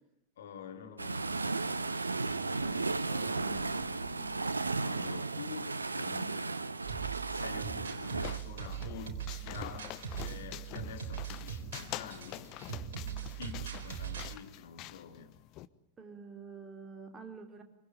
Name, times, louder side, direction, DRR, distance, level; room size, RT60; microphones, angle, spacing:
voice 1, 0.4-4.4 4.7-6.6 7.3-12.5 13.4-15.3, left 7 dB, 60° left, 6 dB, 3.0 m, -48 dB
sound 1, 1.0-8.4, right 3 dB, 80° right, 1.0 m, -34 dB
sound 2, 6.8-14.4, right 9 dB, 60° right, 3.9 m, -41 dB
sound 3, 7.5-15.7, left 16 dB, 40° left, 1.1 m, -46 dB
voice 2, 16.0-17.6, right 5 dB, 20° right, 4 dB, 4.6 m, -48 dB
25.0 x 25.0 x 9.5 m, 0.76 s
figure-of-eight pair, 90°, 0 cm